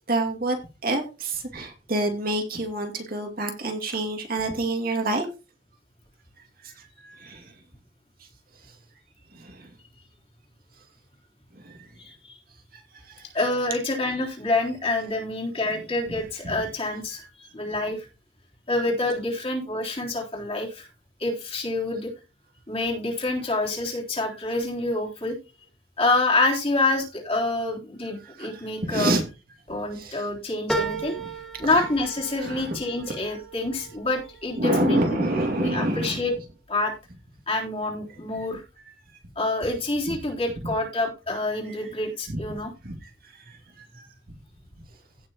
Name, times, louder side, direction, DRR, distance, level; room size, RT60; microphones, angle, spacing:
voice 1, 0.1-0.6 0.8-5.3 6.6-7.5 9.3-9.7 11.6-11.8 13.1-13.3 16.4-16.5 28.2-29.2 29.9-30.2 32.4-32.8 34.6-36.2 42.3-42.4 42.8-43.1 43.5-44.1, right 2 dB, 50° right, 4 dB, 2.3 m, -28 dB
voice 2, 12.0-12.3 13.3-18.1 18.7-20.9 21.2-22.1 22.7-25.4 26.0-29.2 29.7-31.2 31.6-35.3 35.6-36.3 36.7-36.9 37.5-38.6 39.4-42.7, left 2 dB, 30° left, -2 dB, 3.4 m, -27 dB
sound 1, 30.7-35.5 35.9-36.6 37.0-37.1, right 2 dB, ahead, 1.5 m, -35 dB
16.5 x 6.2 x 2.9 m, 0.29 s
head